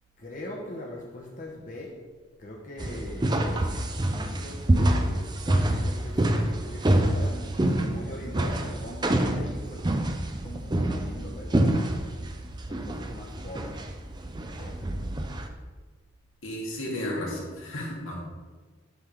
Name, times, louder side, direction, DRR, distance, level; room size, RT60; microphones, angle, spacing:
voice 1, 0.2-2.0 2.4-6.3 6.6-9.9 10.4-12.1 12.7-13.8 14.5-15.1, left 1 dB, 40° left, -2 dB, 1.0 m, -41 dB
sound 1, 2.8-15.5, right 1 dB, 20° right, 0.5 m, -27 dB
voice 2, 16.4-18.2, left 1 dB, 85° left, -3 dB, 2.1 m, -33 dB
8.1 x 3.6 x 6.1 m, 1.4 s
head